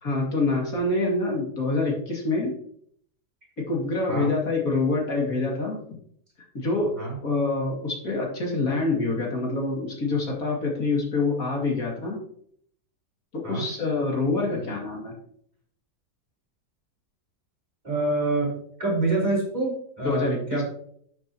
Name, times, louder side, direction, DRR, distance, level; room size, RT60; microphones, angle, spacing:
voice 1, 0.0-2.6 3.6-6.0 6.5-12.2 13.3-15.1 20.0-20.6, left 3 dB, 60° left, -1 dB, 2.9 m, -26 dB
voice 2, 14.4-14.7 17.8-18.5 18.8-20.6, right 2 dB, 25° right, -5 dB, 4.7 m, -26 dB
12.5 x 7.4 x 3.0 m, 0.63 s
omnidirectional pair, 1.7 m